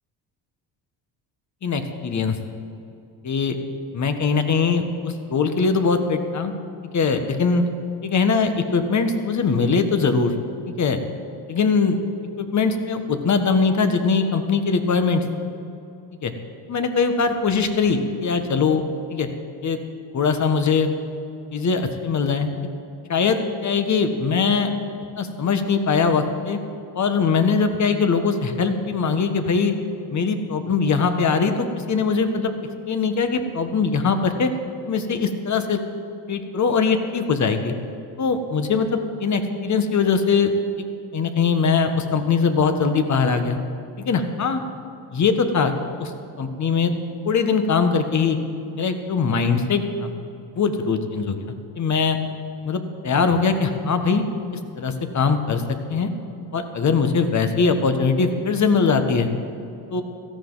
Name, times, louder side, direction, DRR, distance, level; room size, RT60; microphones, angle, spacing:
voice 1, 1.6-2.4 3.2-3.6 3.9-6.5 6.9-7.6 8.0-10.3 10.7-11.0 11.5-12.0 12.4-15.2 16.2-16.3 16.7-18.8 19.1-19.3 19.6-19.8 20.1-20.9 21.5-22.5 23.1-24.7 25.2-26.6 26.9-29.7 30.1-32.6 32.9-34.5 34.9-35.8 36.3-37.7 38.2-40.5 40.8-40.9 41.1-43.6 44.0-44.6 45.1-45.7 46.0-46.1 46.4-46.9 47.2-48.4 48.8-50.1 50.6-51.4 51.8-52.2 52.6-54.3 54.5-55.6 55.9-56.1 56.5-59.3 59.9-60.0, left 5 dB, 40° left, 7 dB, 1.5 m, -21 dB
17.0 x 14.0 x 4.0 m, 2.7 s
cardioid pair, 95°, 43 cm